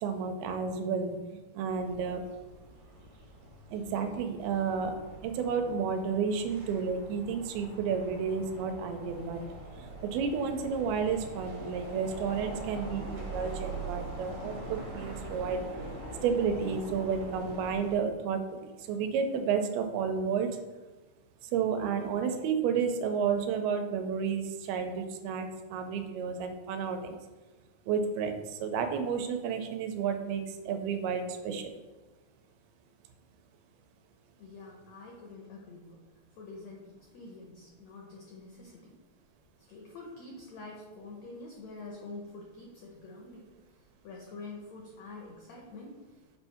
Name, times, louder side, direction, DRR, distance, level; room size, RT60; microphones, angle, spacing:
voice 1, 0.0-2.2 3.7-4.9 5.2-9.4 9.8-15.6 16.2-20.5 21.5-27.2 27.9-31.7, right 6 dB, 85° right, 6 dB, 2.5 m, -31 dB
sound 1, 1.7-18.0, right 2 dB, 65° right, 1.3 m, -43 dB
voice 2, 34.4-36.0 36.3-39.0 39.6-43.5 43.8-46.2, left 3 dB, 85° left, -1 dB, 1.5 m, -46 dB
7.5 x 2.7 x 5.6 m, 1.2 s
omnidirectional pair, 4.3 m